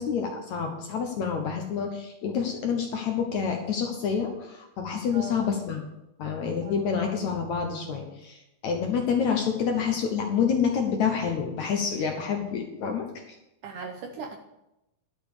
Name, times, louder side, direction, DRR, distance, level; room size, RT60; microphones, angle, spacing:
voice 1, 0.0-5.9 6.2-13.4, left 6 dB, 65° left, 3 dB, 1.9 m, -28 dB
voice 2, 6.6-7.0 13.6-14.4, right 4 dB, 75° right, 3 dB, 2.0 m, -39 dB
11.5 x 6.7 x 6.9 m, 0.92 s
omnidirectional pair, 4.4 m